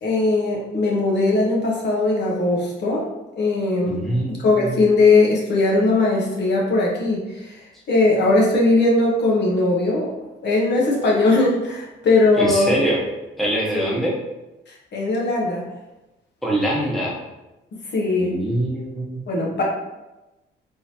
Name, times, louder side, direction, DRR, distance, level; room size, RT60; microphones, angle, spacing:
voice 1, 0.0-3.1 3.3-10.1 10.4-12.7 13.7-13.9 14.7-15.6 17.9-18.4 19.3-19.6, left 2 dB, 60° left, -3 dB, 1.1 m, -19 dB
voice 2, 3.9-4.8 12.4-13.0 13.4-14.1 16.4-17.2 18.2-19.2, right 1 dB, ahead, -4 dB, 1.0 m, -24 dB
3.8 x 3.1 x 2.8 m, 1.0 s
cardioid pair, 90°, 20 cm